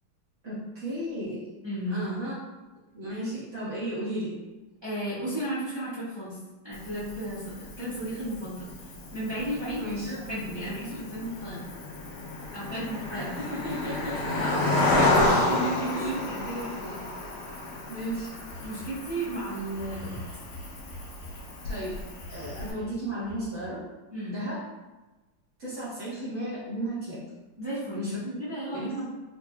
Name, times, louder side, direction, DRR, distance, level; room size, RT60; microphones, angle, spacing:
voice 1, 0.4-1.5 1.9-2.3 2.9-4.4 9.8-10.1 13.1-15.4 15.9-16.2 17.9-18.3 21.6-22.0 22.3-23.8 24.3-24.6 25.6-27.2 27.9-28.2 28.7-29.1, equal, 45° right, -10 dB, 1.4 m, -34 dB
voice 2, 1.6-2.0 4.8-6.4 6.6-11.7 12.5-13.3 14.4-17.1 18.6-20.2 24.1-24.4 27.6-29.1, right 1 dB, 25° right, -12 dB, 0.6 m, -34 dB
Cricket, 6.7-22.7, left 2 dB, 85° left, 1.6 m, -31 dB
sound 1, 18.5-19.0 19.7-21.8 22.2-23.7, equal, 85° right, 1.9 m, -44 dB
4.6 x 2.8 x 2.3 m, 1.2 s
omnidirectional pair, 2.3 m